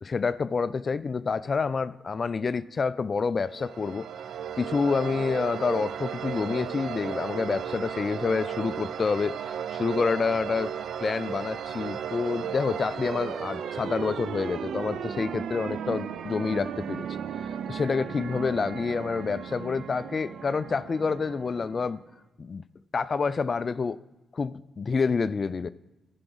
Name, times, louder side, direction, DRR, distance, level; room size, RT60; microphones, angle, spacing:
voice 1, 0.0-4.1 4.6-10.7 11.0-17.1 17.4-22.0 22.4-22.7 22.9-24.0 24.3-25.7, left 5 dB, 45° left, 16 dB, 0.3 m, -28 dB
sound 1, 3.4-22.1, right 8 dB, 75° right, 0.4 m, -35 dB
14.5 x 5.9 x 3.9 m, 1.0 s
cardioid pair, 70°, 0 cm